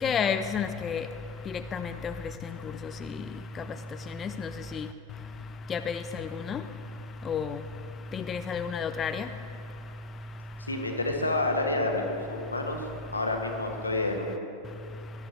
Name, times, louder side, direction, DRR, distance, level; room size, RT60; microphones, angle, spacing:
voice 1, 0.0-1.0 1.7-2.1 4.2-4.3 4.7-4.9 5.7-6.2 6.5-6.6 7.3-7.5 8.1-9.3, left 7 dB, 25° left, 9 dB, 0.4 m, -30 dB
voice 2, 10.7-12.9 13.1-14.6, left 2 dB, 80° left, 3 dB, 1.4 m, -29 dB
19.5 x 11.5 x 3.3 m, 2.7 s
figure-of-eight pair, 90°, 0 cm